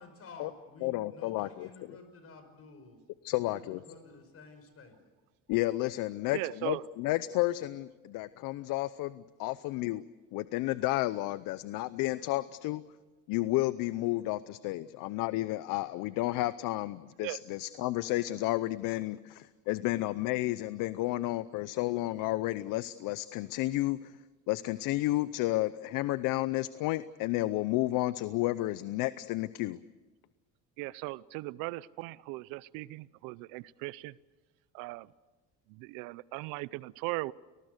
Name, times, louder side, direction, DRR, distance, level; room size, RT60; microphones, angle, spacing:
voice 1, 0.0-3.0 3.5-5.0 6.3-6.6, left 4 dB, 45° left, 8 dB, 5.3 m, -51 dB
voice 2, 0.8-1.7 3.2-3.8 5.5-10.0 10.3-12.8 13.3-24.2 24.5-29.8, left 17 dB, 75° left, 16 dB, 0.7 m, -31 dB
voice 3, 6.3-6.8 17.2-17.4 30.8-34.2 34.7-35.1 35.7-37.3, right 20 dB, 85° right, 20 dB, 0.7 m, -38 dB
30.0 x 19.0 x 6.7 m, 1.2 s
cardioid pair, 110°, 33 cm